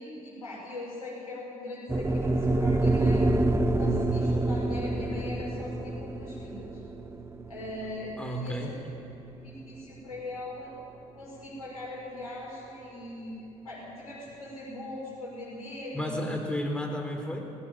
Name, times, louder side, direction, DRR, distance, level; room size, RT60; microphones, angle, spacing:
voice 1, 0.0-3.3 3.7-6.8 7.5-8.7 9.4-10.7 11.1-13.3 13.6-16.5, left 2 dB, 85° left, -6 dB, 6.8 m, -40 dB
sound 1, 1.9-10.1, right 2 dB, 15° right, 1.4 m, -27 dB
voice 2, 8.2-8.7 15.9-17.4, left 1 dB, 5° left, 2 dB, 4.2 m, -32 dB
19.0 x 18.0 x 9.0 m, 2.7 s
figure-of-eight pair, 55°, 18 cm